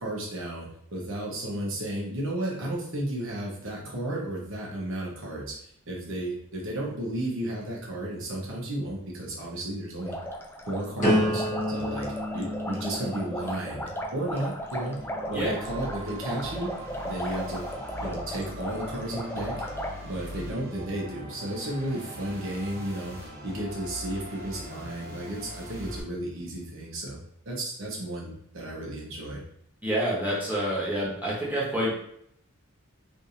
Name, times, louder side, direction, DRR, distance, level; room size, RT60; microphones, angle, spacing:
voice 1, 0.0-10.2 10.7-15.0 15.3-16.7 17.0-17.6 18.0-19.6 20.0-27.2 27.4-29.4, right 1 dB, 65° right, -3 dB, 1.2 m, -33 dB
sound 1, 10.0-19.9, equal, 10° left, 0.4 m, -36 dB
sound 2, 11.0-16.9 17.4-17.8, left 1 dB, 35° left, 1.3 m, -32 dB
sound 3, 15.0-26.0, equal, 45° right, 1.1 m, -41 dB
voice 2, 29.8-31.9, right 1 dB, 10° right, -7 dB, 1.3 m, -27 dB
3.5 x 3.4 x 2.8 m, 0.69 s
head